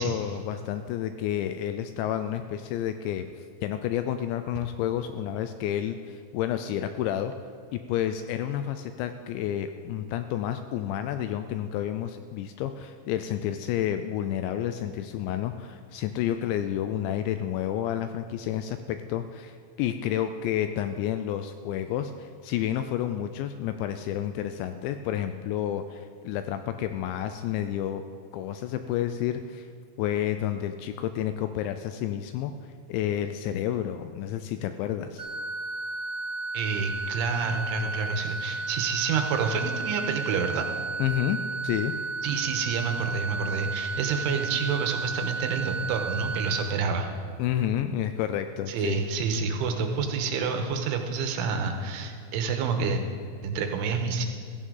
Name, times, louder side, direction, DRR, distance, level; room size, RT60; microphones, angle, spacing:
voice 1, 0.0-7.3 7.7-28.0 28.3-29.7 30.0-32.5 32.9-35.3 41.0-41.9 47.4-49.1, left 11 dB, 85° left, 9 dB, 2.6 m, -30 dB
sound 1, 35.2-46.6, right 3 dB, 45° right, 1.1 m, -33 dB
voice 2, 36.5-40.7 42.2-47.1 48.7-53.0 53.4-54.3, right 5 dB, 85° right, 5 dB, 3.4 m, -28 dB
16.0 x 14.5 x 3.9 m, 2.2 s
omnidirectional pair, 5.6 m